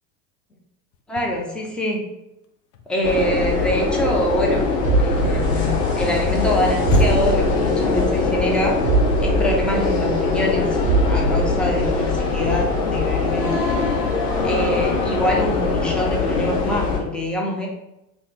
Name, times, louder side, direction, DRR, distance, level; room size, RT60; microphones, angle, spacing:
sound 1, 0.9-2.1 2.4-7.5, left 4 dB, 70° left, 0.6 m, -31 dB
voice 1, 1.1-2.0 2.9-4.7 5.0-8.8 9.2-10.8 11.1-13.6 14.4-17.7, equal, ahead, -1 dB, 0.4 m, -25 dB
sound 2, 3.0-17.0, left 4 dB, 45° left, 1.2 m, -22 dB
sound 3, 4.8-6.2 6.5-6.6 6.8-8.2 8.5-8.6 8.8-10.5 10.8-12.2 12.5-12.6, right 4 dB, 65° right, 0.6 m, -23 dB
3.2 x 2.0 x 4.2 m, 0.89 s
hypercardioid pair, 85°, 49 cm